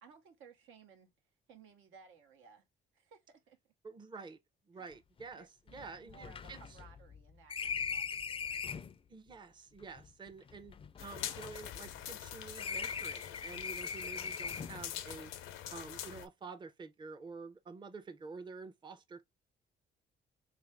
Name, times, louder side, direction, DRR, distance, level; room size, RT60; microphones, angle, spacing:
voice 1, 0.0-1.1 1.5-2.7 2.9-3.7 4.7-4.9 5.3-8.6, right 6 dB, 85° right, 0.9 m, -59 dB
voice 2, 3.8-4.4 4.7-6.6 9.1-15.3 15.7-19.3, right 4 dB, 25° right, 0.5 m, -49 dB
sound 1, 4.9-5.0 5.2-5.3 5.7-9.0 9.8-12.2 12.6-14.9, left 6 dB, 25° left, 0.3 m, -41 dB
sound 2, 11.0-16.3, left 11 dB, 90° left, 0.5 m, -45 dB
3.3 x 2.5 x 3.2 m
cardioid pair, 90°, 20 cm